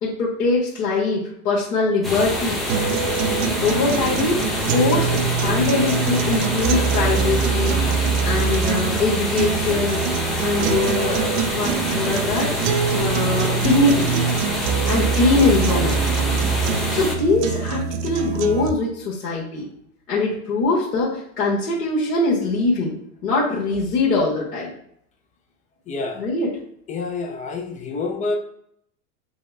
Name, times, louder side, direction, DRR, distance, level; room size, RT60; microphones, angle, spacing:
voice 1, 0.0-2.6 3.6-4.4 4.7-7.8 8.2-10.0 10.4-12.5 12.9-14.1 14.9-16.0 16.9-19.6 20.1-23.0 23.2-24.7 26.1-26.5, left 3 dB, 60° left, -6 dB, 1.6 m, -22 dB
sound 1, 2.0-17.1, left 1 dB, ahead, 0.9 m, -26 dB
sound 2, 2.7-18.7, right 6 dB, 50° right, 0.5 m, -24 dB
voice 2, 25.9-26.3 26.9-28.4, left 3 dB, 15° left, 3 dB, 0.4 m, -27 dB
5.3 x 2.2 x 3.5 m, 0.71 s
hypercardioid pair, 110°, 46 cm